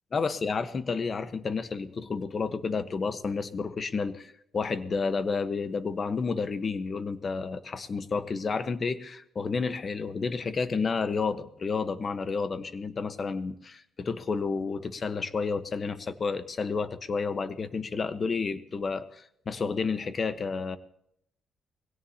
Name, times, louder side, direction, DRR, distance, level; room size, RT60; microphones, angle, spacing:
voice 1, 0.1-20.8, left 4 dB, 40° left, 11 dB, 1.2 m, -31 dB
22.0 x 17.0 x 2.9 m, 0.73 s
cardioid pair, 90°, 0 cm